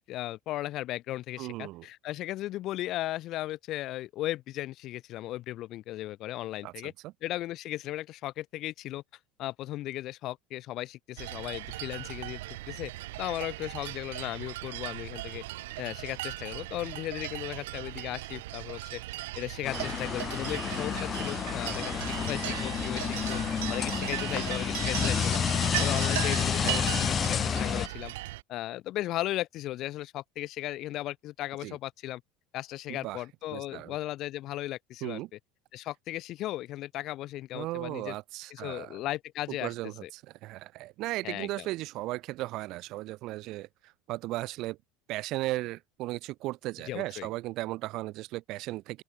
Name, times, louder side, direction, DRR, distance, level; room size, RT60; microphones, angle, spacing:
voice 1, 0.0-6.9 7.2-9.0 9.4-12.4 12.7-12.9 13.2-15.4 15.8-23.4 23.7-25.4 25.8-28.1 28.5-32.2 32.5-35.4 35.7-38.2 38.5-39.7 40.0-40.1 41.2-41.7 46.9-47.3, left 15 dB, 50° left, 5.4 m, -36 dB
voice 2, 1.4-1.9 6.6-6.9 25.7-26.0 26.6-26.8 31.6-31.8 32.9-33.2 33.5-33.9 35.0-35.3 37.5-39.0 39.6-44.8 45.1-49.0, right 18 dB, 55° right, 1.5 m, -36 dB
sound 1, 11.2-28.4, right 18 dB, 85° right, 1.9 m, -37 dB
sound 2, 19.6-27.9, left 7 dB, 30° left, 2.5 m, -30 dB
open air
supercardioid pair, 120°, 0 cm